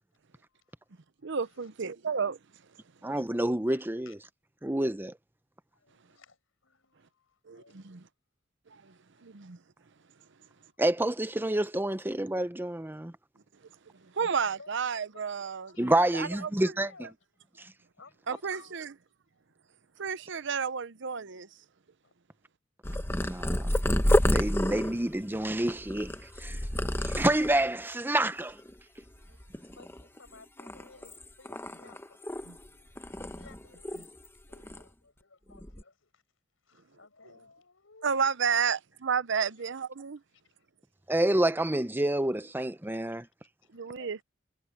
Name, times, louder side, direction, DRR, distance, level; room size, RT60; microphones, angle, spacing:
voice 1, 0.5-1.7 3.7-4.2 5.7-8.0 8.9-9.2 10.2-10.8 13.9-14.2 14.5-14.8 15.1-16.5 16.7-17.1 17.9-18.8 22.0-22.1 29.2-29.3 29.7-32.2 33.1-34.2 34.5-36.2 36.6-38.2 39.4-39.6 40.3-40.7 43.6-44.2, left 4 dB, 75° left, 5.4 m, -58 dB
voice 2, 1.2-2.4 7.5-8.0 8.8-8.9 9.2-9.6 14.1-15.7 16.1-16.5 18.3-18.9 20.0-21.5 32.5-32.6 38.0-40.2 43.7-44.2, right 6 dB, 60° right, 0.7 m, -31 dB
voice 3, 3.0-4.1 4.6-5.1 10.8-13.1 15.8-16.9 23.2-23.7 24.3-26.1 26.4-26.6 27.0-28.6 41.1-43.3, right 1 dB, 10° right, 0.7 m, -28 dB
Purr, 22.8-27.7 28.3-28.7 29.0-30.2 30.6-32.7 33.0-34.3 34.5-34.8 35.5-35.8, left 1 dB, 10° left, 1.1 m, -30 dB
head